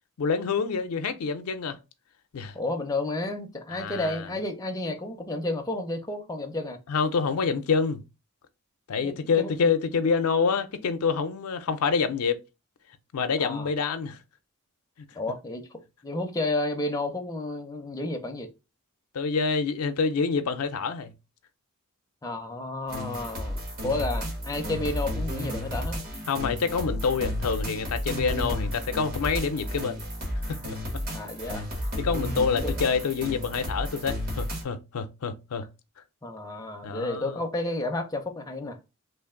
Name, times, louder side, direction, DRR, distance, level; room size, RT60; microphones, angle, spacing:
voice 1, 0.2-1.8 2.3-2.6 3.7-4.3 6.9-8.0 8.9-12.4 13.1-14.2 19.1-21.1 26.3-30.0 30.5-30.8 32.0-35.7 36.8-37.4, left 5 dB, 90° left, 0.5 m, -27 dB
voice 2, 2.5-6.8 9.0-9.5 13.4-13.7 15.1-18.5 22.2-26.0 31.0-31.7 32.5-32.8 36.2-38.8, left 2 dB, 15° left, 0.5 m, -31 dB
sound 1, 22.9-34.6, equal, 45° right, 1.1 m, -32 dB
3.2 x 2.5 x 3.6 m
head